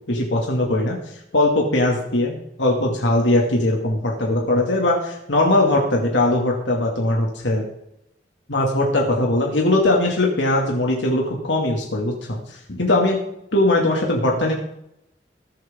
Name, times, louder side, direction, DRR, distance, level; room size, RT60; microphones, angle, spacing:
voice 1, 0.1-1.0 1.3-7.6 8.5-13.2 13.5-14.5, left 1 dB, 90° left, -1 dB, 2.2 m, -20 dB
19.5 x 7.9 x 3.7 m, 0.80 s
head